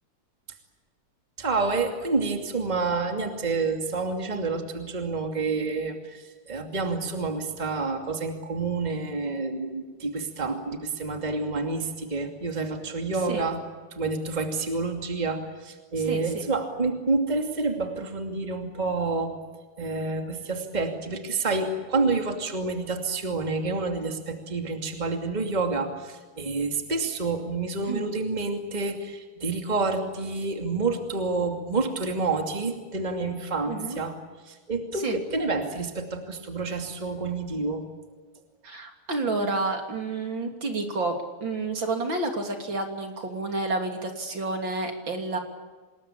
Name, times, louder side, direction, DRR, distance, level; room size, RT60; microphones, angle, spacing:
voice 1, 1.4-13.6 14.0-19.4 19.8-34.1 34.5-37.8, right 3 dB, 20° right, 4 dB, 2.6 m, -28 dB
voice 2, 16.1-16.4 27.9-28.1 33.7-34.0 34.9-35.2 38.6-45.4, right 3 dB, 60° right, 4 dB, 3.8 m, -30 dB
27.5 x 21.0 x 8.6 m, 1.3 s
omnidirectional pair, 2.4 m